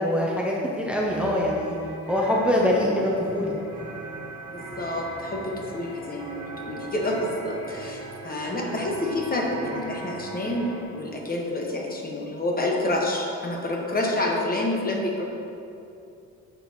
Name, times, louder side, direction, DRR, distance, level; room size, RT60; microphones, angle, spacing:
voice 1, 0.0-1.8 2.1-3.5 8.5-8.7, left 1 dB, 5° right, -3 dB, 0.7 m, -24 dB
sound 1, 0.9-10.8, right 2 dB, 75° right, 1.3 m, -39 dB
voice 2, 4.8-15.2, left 1 dB, 30° left, -1 dB, 1.1 m, -28 dB
6.9 x 4.5 x 4.1 m, 2.6 s
cardioid pair, 90°, 30 cm